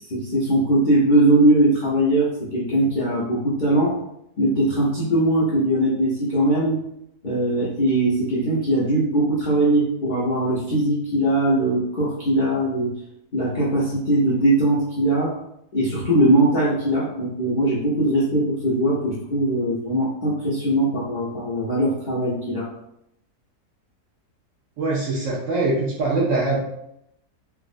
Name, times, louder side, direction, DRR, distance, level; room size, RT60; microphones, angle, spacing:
voice 1, 0.1-4.0 4.4-6.8 7.2-12.9 13.3-15.3 15.7-22.7, right 1 dB, 60° left, -8 dB, 0.5 m, -20 dB
voice 2, 24.8-26.6, right 2 dB, 70° right, -4 dB, 0.7 m, -22 dB
3.5 x 2.0 x 2.4 m, 0.79 s
omnidirectional pair, 1.7 m